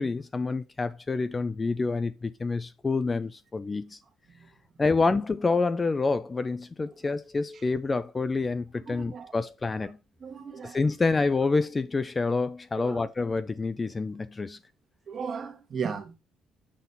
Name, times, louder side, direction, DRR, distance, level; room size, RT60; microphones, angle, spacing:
voice 1, 0.0-4.0 4.8-10.0 10.6-14.6, left 3 dB, 20° left, 0.4 m, -27 dB
voice 2, 8.9-9.4 10.2-10.8 12.8-13.0 15.1-16.1, right 6 dB, 40° right, 1.4 m, -36 dB
6.2 x 3.9 x 5.3 m
cardioid pair, 125°, 0 cm